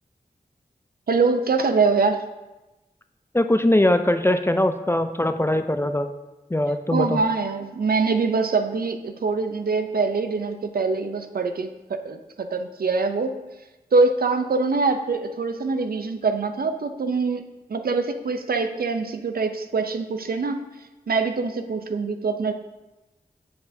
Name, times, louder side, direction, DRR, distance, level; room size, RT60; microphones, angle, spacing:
voice 1, 1.1-2.2 6.9-13.3 13.9-17.4 17.7-20.6 21.1-22.5, right 4 dB, 70° right, 7 dB, 0.5 m, -24 dB
voice 2, 3.3-6.1 6.5-7.2, left 1 dB, 15° left, 8 dB, 0.4 m, -21 dB
7.6 x 6.8 x 2.7 m, 1.1 s
wide cardioid pair, 70°, 16 cm